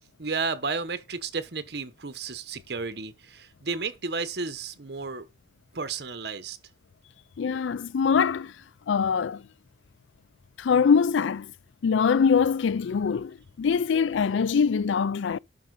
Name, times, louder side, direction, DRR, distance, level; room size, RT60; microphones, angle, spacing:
voice 1, 0.2-5.3 5.7-6.6, right 4 dB, 60° right, 0.9 m, -32 dB
voice 2, 7.4-8.5 8.9-9.4 10.6-11.5 11.8-15.4, left 6 dB, 80° left, 0.4 m, -23 dB
11.0 x 5.5 x 3.8 m
head